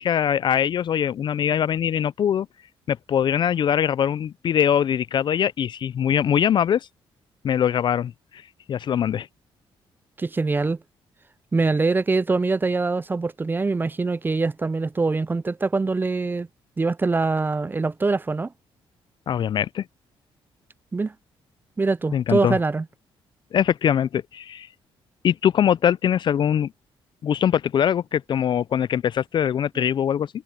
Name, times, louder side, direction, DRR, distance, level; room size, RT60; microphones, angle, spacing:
voice 1, 0.0-2.5 2.9-6.9 7.4-8.4 8.7-9.3 19.3-19.8 22.1-22.6 23.5-24.7 25.2-26.7 27.2-30.3, left 9 dB, 50° left, 0.4 m, -22 dB
voice 2, 10.2-10.8 11.5-16.5 16.8-18.5 20.9-21.1 21.8-22.8, right 3 dB, 20° right, 0.4 m, -23 dB
cardioid pair, 100°, 10 cm